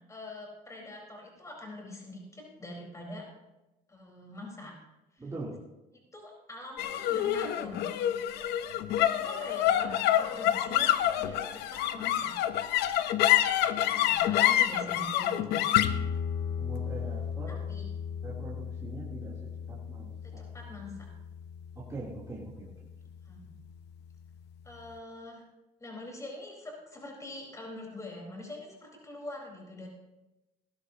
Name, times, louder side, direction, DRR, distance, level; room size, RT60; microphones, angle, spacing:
voice 1, 0.1-3.3 3.9-4.7 5.1-5.2 6.1-7.9 8.9-12.3 13.8-15.6 17.5-17.8 20.2-21.1 23.2-23.5 24.6-25.4 25.8-29.9, left 1 dB, 20° left, 0 dB, 4.3 m, -44 dB
voice 2, 5.2-5.5 16.6-17.6 18.2-19.3 19.7-20.5 21.7-22.7, right 2 dB, 20° right, -7 dB, 3.1 m, -42 dB
sound 1, 6.8-23.3, left 11 dB, 80° left, 0.7 m, -29 dB
18.0 x 12.0 x 2.8 m, 1.0 s
cardioid pair, 110°, 17 cm